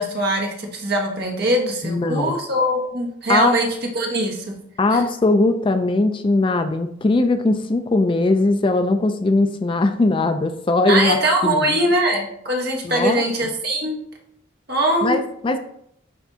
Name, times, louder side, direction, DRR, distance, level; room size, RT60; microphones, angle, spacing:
voice 1, 0.0-3.7 3.9-4.4 4.9-5.0 10.9-13.9 14.7-15.2, right 1 dB, 55° right, 0 dB, 1.3 m, -21 dB
voice 2, 1.8-2.3 3.3-3.6 4.8-11.8 12.8-13.2 15.0-15.6, left 2 dB, 25° left, 8 dB, 0.3 m, -20 dB
10.0 x 3.5 x 2.7 m, 0.71 s
head